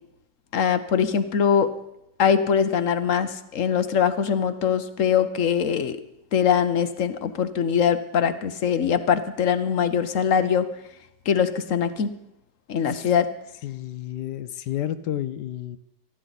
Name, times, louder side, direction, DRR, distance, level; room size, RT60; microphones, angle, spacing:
voice 1, 0.5-1.7 2.2-6.0 6.3-10.7 11.3-12.1 12.7-13.3, left 7 dB, 55° left, 11 dB, 1.0 m, -22 dB
voice 2, 13.6-15.8, left 12 dB, 70° left, 13 dB, 1.2 m, -31 dB
19.0 x 14.5 x 4.1 m, 0.84 s
omnidirectional pair, 2.0 m